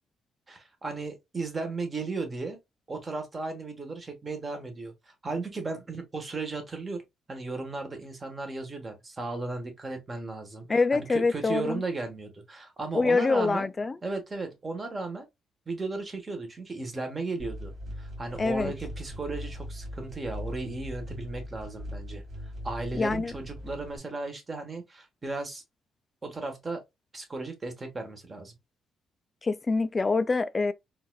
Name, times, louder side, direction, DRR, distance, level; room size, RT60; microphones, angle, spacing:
voice 1, 0.5-2.6 2.9-7.0 7.3-13.7 14.0-15.3 15.7-17.7 18.0-22.2 22.6-25.6 26.2-26.8 27.1-28.5, right 3 dB, 30° right, 1.2 m, -35 dB
voice 2, 10.7-11.8 12.9-14.0 18.4-18.7 23.0-23.3 29.4-30.7, left 3 dB, 30° left, 0.4 m, -25 dB
sound 1, 17.4-24.0, equal, 55° right, 1.7 m, -40 dB
3.9 x 2.5 x 2.3 m
cardioid pair, 90°, 0 cm